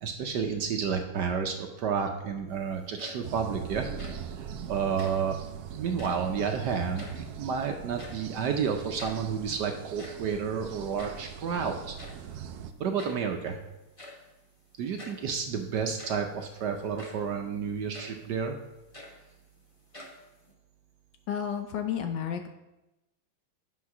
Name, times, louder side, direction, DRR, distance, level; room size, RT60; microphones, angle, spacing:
voice 1, 0.0-3.8 4.4-5.4 5.7-12.0 12.8-13.6 14.8-18.6, right 6 dB, 65° right, 4 dB, 1.1 m, -31 dB
sound 1, 2.8-3.5 3.8-4.3 4.9-5.3 5.9-6.3 6.7-7.5 7.8-8.4 8.7-8.8 9.0-9.3 9.8-11.3 12.0-12.3 13.0-13.3 14.0-14.3 15.0-15.3 15.8-16.3 17.0-17.3 17.9-18.2 18.7-19.5 19.9-20.5, left 1 dB, 20° left, 0.9 m, -47 dB
sound 2, 3.2-12.7, right 8 dB, 85° right, 0.8 m, -41 dB
voice 2, 21.3-22.5, left 8 dB, 70° left, 6 dB, 1.2 m, -31 dB
8.3 x 4.6 x 5.9 m, 0.97 s
omnidirectional pair, 2.3 m